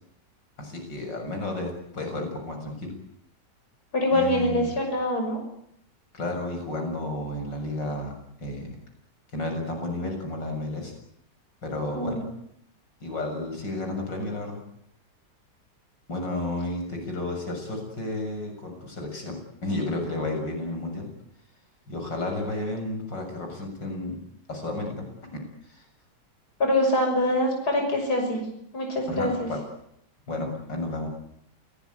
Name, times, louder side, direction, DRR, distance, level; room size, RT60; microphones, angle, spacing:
voice 1, 0.6-2.9 4.1-4.7 6.1-8.1 8.4-8.8 9.3-10.9 11.6-12.3 13.0-14.6 16.1-19.4 19.6-21.1 21.9-24.2 24.5-25.0 25.6-25.9 29.1-29.6 30.3-31.1, left 2 dB, 85° left, 3 dB, 7.6 m, -32 dB
voice 2, 3.9-5.4 11.9-12.2 26.6-28.4 28.7-29.5, left 1 dB, 60° left, 2 dB, 6.8 m, -24 dB
28.5 x 18.5 x 9.5 m, 0.73 s
omnidirectional pair, 1.9 m